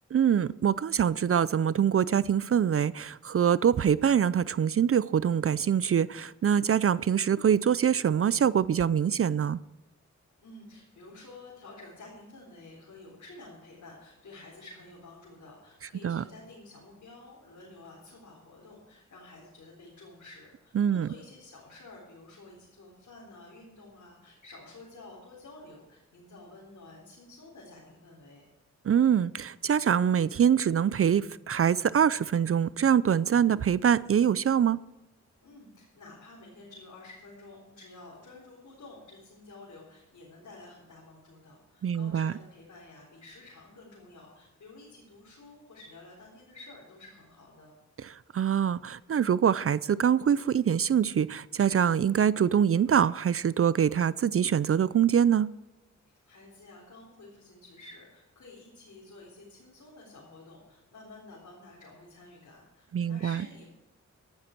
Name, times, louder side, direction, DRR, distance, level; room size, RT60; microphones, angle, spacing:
voice 1, 0.1-9.6 16.0-16.2 20.8-21.1 28.9-34.8 41.8-42.3 48.0-55.5 62.9-63.4, right 8 dB, 50° right, 0.4 m, -24 dB
voice 2, 10.4-28.5 35.4-47.7 56.0-63.7, left 2 dB, 75° left, 3.9 m, -51 dB
15.5 x 11.5 x 4.5 m
cardioid pair, 75°, 30 cm